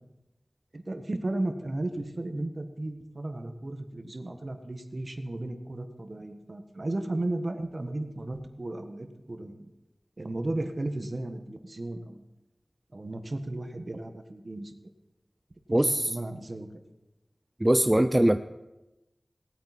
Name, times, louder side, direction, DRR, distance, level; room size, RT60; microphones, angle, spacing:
voice 1, 0.7-9.7 10.2-12.2 12.9-14.7 15.7-16.7, right 2 dB, 50° right, 6 dB, 1.3 m, -35 dB
voice 2, 15.7-16.2 17.6-18.4, right 1 dB, 20° right, 9 dB, 0.4 m, -22 dB
18.5 x 8.8 x 4.2 m, 1.0 s
wide cardioid pair, 55°, 0 cm